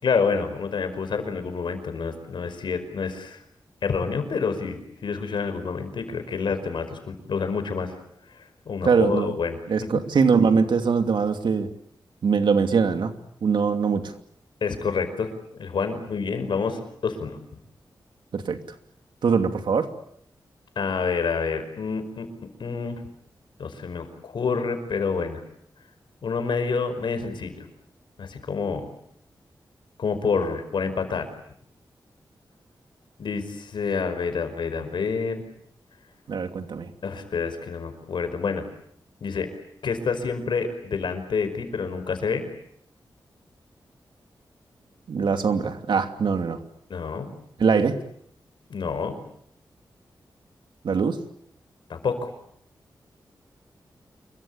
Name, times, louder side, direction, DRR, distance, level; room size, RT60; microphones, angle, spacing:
voice 1, 0.0-3.4 3.8-8.0 8.4-10.0 14.6-15.3 15.6-17.4 20.8-23.0 23.6-25.4 26.2-27.7 28.2-28.9 30.0-31.3 33.2-35.4 37.0-38.6 39.2-39.5 39.8-42.4 46.9-47.3 48.7-49.2 51.9-52.3, left 5 dB, 85° left, 9 dB, 5.2 m, -28 dB
voice 2, 8.8-9.3 9.7-11.7 12.2-13.1 13.4-14.1 18.3-18.6 19.2-19.9 36.3-36.9 45.1-46.6 47.6-48.0 50.8-51.2, right 5 dB, 80° right, 7 dB, 2.8 m, -22 dB
27.5 x 23.5 x 8.8 m, 0.70 s
wide cardioid pair, 140°, 8 cm